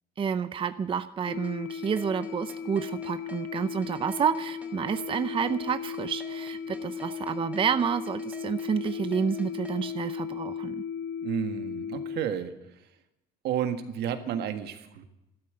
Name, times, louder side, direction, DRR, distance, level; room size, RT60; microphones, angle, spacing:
voice 1, 0.2-10.8, right 7 dB, 30° right, 12 dB, 0.6 m, -29 dB
sound 1, 1.3-12.2, left 7 dB, 75° left, 1.0 m, -36 dB
sound 2, 1.4-9.8, right 4 dB, 10° right, 2.9 m, -49 dB
voice 2, 11.2-12.5 13.4-15.0, right 9 dB, 75° right, 8 dB, 1.7 m, -31 dB
13.0 x 12.5 x 7.8 m, 0.91 s
cardioid pair, 110°, 17 cm